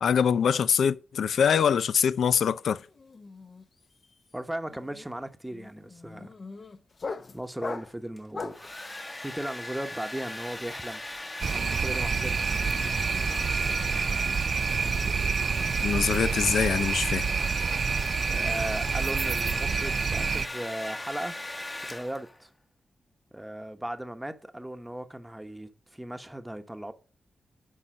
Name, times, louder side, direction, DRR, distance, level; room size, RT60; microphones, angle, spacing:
voice 1, 0.0-2.8 15.8-17.3, left 7 dB, 80° left, 0.4 m, -24 dB
sound 1, 2.0-2.3 2.5-8.7, left 4 dB, 45° left, 0.8 m, -41 dB
voice 2, 4.3-6.3 7.3-8.6 9.2-11.0 11.5-12.5 18.3-21.3 21.9-22.5 23.3-26.9, right 1 dB, 10° right, 1.0 m, -37 dB
Domestic sounds home sounds, 8.2-22.4, left 1 dB, 20° left, 1.0 m, -38 dB
sound 2, 11.4-20.5, right 6 dB, 60° right, 0.4 m, -28 dB
10.0 x 4.3 x 6.3 m
wide cardioid pair, 100°, 0 cm